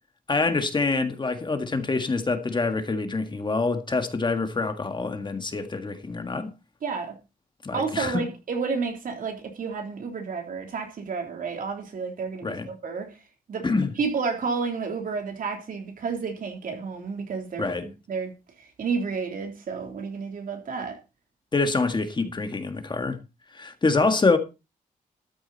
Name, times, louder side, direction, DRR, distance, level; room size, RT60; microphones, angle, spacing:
voice 1, 0.3-6.5 7.6-8.2 12.4-12.7 13.6-13.9 17.6-17.9 21.5-23.2 23.5-24.4, left 3 dB, 30° left, 1.8 m, -26 dB
voice 2, 6.8-7.1 7.7-13.2 13.5-17.7 18.1-18.3 18.6-21.0, right 5 dB, 70° right, 3.4 m, -31 dB
13.0 x 9.0 x 4.2 m
wide cardioid pair, 105°, 15 cm